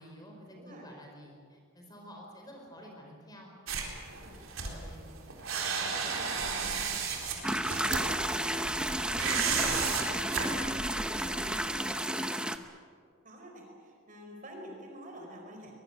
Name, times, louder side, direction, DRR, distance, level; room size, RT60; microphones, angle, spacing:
voice 1, 0.0-3.5 4.6-5.1 5.5-12.5, equal, 20° left, 1 dB, 4.8 m, -50 dB
sound 1, 3.7-11.8, right 5 dB, 70° right, 4.0 m, -34 dB
voice 2, 4.2-4.6 13.2-15.7, equal, 40° right, 2 dB, 4.6 m, -48 dB
sound 2, 7.4-12.6, right 1 dB, 5° right, 0.8 m, -32 dB
22.5 x 21.5 x 8.2 m, 2.1 s
head